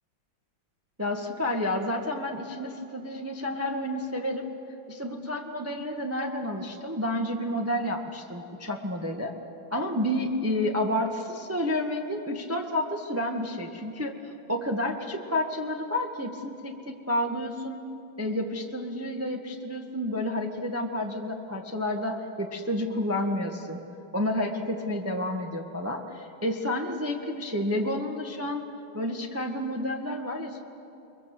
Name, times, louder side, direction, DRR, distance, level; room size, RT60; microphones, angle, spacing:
voice 1, 1.0-4.5 4.9-9.3 9.7-14.2 14.5-17.8 18.2-23.8 24.1-28.7 28.9-30.6, left 1 dB, 10° right, 2 dB, 1.3 m, -30 dB
29.5 x 22.5 x 7.7 m, 2.9 s
omnidirectional pair, 2.2 m